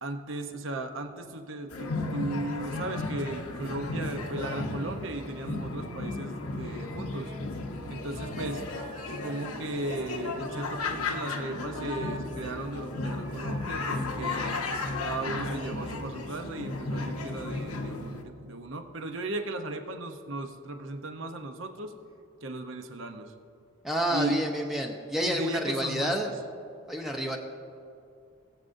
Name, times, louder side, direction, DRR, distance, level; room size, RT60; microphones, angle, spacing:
voice 1, 0.0-7.3 7.9-8.6 9.1-14.6 15.0-21.9 22.4-23.3 24.1-24.4 25.2-26.3, right 2 dB, 60° right, 5 dB, 0.8 m, -36 dB
sound 1, 1.7-18.2, left 2 dB, 85° left, 0.9 m, -34 dB
voice 2, 23.8-26.3 26.9-27.4, equal, ahead, 1 dB, 0.7 m, -29 dB
21.0 x 7.7 x 2.6 m, 2.5 s
head